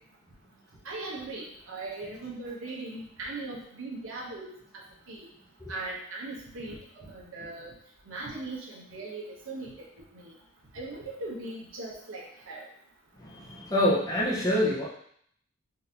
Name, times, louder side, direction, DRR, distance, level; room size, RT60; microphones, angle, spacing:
voice 1, 0.8-4.5 5.1-5.3 5.7-7.7 8.1-9.7 10.1-10.3 10.7-12.7, right 2 dB, 60° right, -3 dB, 0.8 m, -39 dB
voice 2, 13.2-14.9, left 1 dB, 15° left, -5 dB, 0.6 m, -26 dB
3.9 x 2.6 x 2.8 m, 0.65 s
head